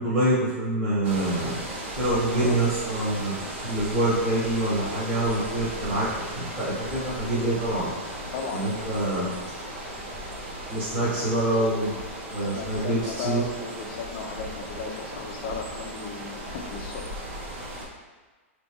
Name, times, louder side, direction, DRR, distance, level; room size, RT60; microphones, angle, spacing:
voice 1, 0.0-1.6 2.0-3.3 3.6-6.0 6.3-7.9 8.5-9.2 10.7-11.9 12.3-13.0 13.2-13.4, right 1 dB, 25° right, -11 dB, 1.4 m, -25 dB
sound 1, 1.0-17.9, right 1 dB, 60° right, 1.0 m, -36 dB
voice 2, 2.1-2.6 8.3-9.4 12.4-17.2, left 5 dB, 40° left, 3 dB, 0.5 m, -36 dB
4.2 x 3.2 x 3.0 m, 1.3 s
supercardioid pair, 155°, 7 cm